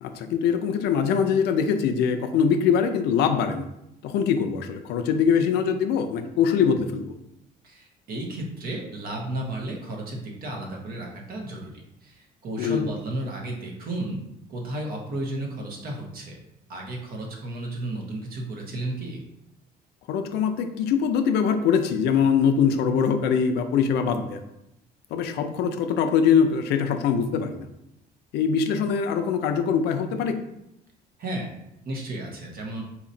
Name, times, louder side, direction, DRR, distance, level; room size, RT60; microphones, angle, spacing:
voice 1, 0.0-3.7 4.0-7.1 12.6-12.8 20.1-24.4 25.1-27.7 28.3-30.4, left 7 dB, 80° left, 7 dB, 0.5 m, -23 dB
voice 2, 7.6-11.7 12.0-14.2 14.5-16.4 16.7-19.2 31.2-31.5 31.8-32.8, right 1 dB, 60° right, 0 dB, 1.0 m, -33 dB
4.1 x 2.9 x 2.6 m, 0.83 s
cardioid pair, 110°, 17 cm